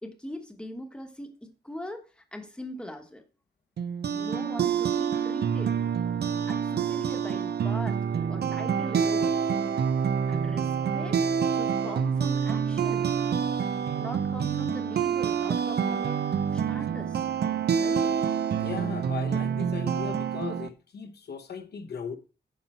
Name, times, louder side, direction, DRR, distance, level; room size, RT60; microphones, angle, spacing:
voice 1, 0.0-3.2 4.1-5.8 6.5-8.0 8.3-9.4 10.3-11.2 11.5-13.1 14.0-16.2 16.5-17.2 17.7-18.1, left 1 dB, 5° left, 1.1 m, -41 dB
sound 1, 3.8-20.7, right 7 dB, 70° right, 0.7 m, -27 dB
voice 2, 18.6-22.2, left 6 dB, 70° left, 0.9 m, -37 dB
9.5 x 5.9 x 4.3 m
wide cardioid pair, 175°, 17 cm